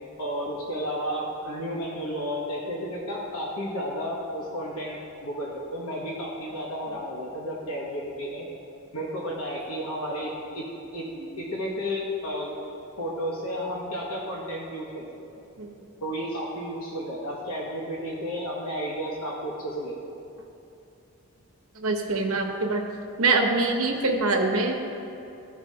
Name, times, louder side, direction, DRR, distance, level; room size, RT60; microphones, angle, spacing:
voice 1, 0.2-8.5 8.9-10.6 10.9-11.1 11.4-12.6 13.0-15.0 16.0-19.9, equal, 85° left, -4 dB, 1.0 m, -32 dB
voice 2, 21.8-22.8 23.2-24.7, right 3 dB, 80° right, 2 dB, 0.9 m, -24 dB
13.5 x 4.8 x 2.7 m, 2.8 s
head